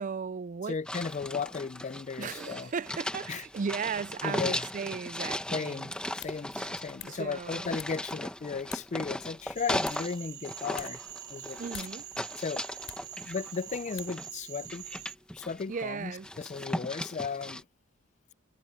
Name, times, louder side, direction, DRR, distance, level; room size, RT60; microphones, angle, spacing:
voice 1, 0.0-0.8 2.2-5.9 6.3-6.7 7.0-7.7 11.6-12.1 15.7-16.3, right 5 dB, 40° right, 0.4 m, -36 dB
voice 2, 0.7-2.7 3.3-3.4 4.2-4.7 5.5-11.0 11.3-11.6 12.4-12.7 13.2-14.9 15.4-17.6, left 5 dB, 35° left, 0.4 m, -35 dB
sound 1, 0.9-10.2 10.4-14.3 14.7-15.8 16.2-17.6, left 1 dB, 5° left, 1.1 m, -37 dB
sound 2, 6.1-14.7, left 10 dB, 65° left, 7.3 m, -51 dB
Cricket / Frog, 9.5-15.1, right 11 dB, 60° right, 4.8 m, -45 dB
head